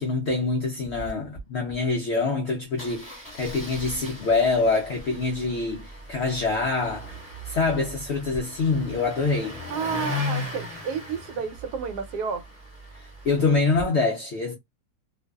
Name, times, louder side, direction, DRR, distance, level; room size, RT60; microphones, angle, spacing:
voice 1, 0.0-9.6 12.9-14.5, left 3 dB, 75° left, 0.6 m, -25 dB
Engine starting, 0.8-1.1 1.4-1.5 1.7-1.9 2.8-13.8, left 2 dB, 10° left, 1.1 m, -37 dB
voice 2, 9.7-12.4, right 6 dB, 80° right, 1.2 m, -31 dB
2.6 x 2.3 x 2.2 m
omnidirectional pair, 1.7 m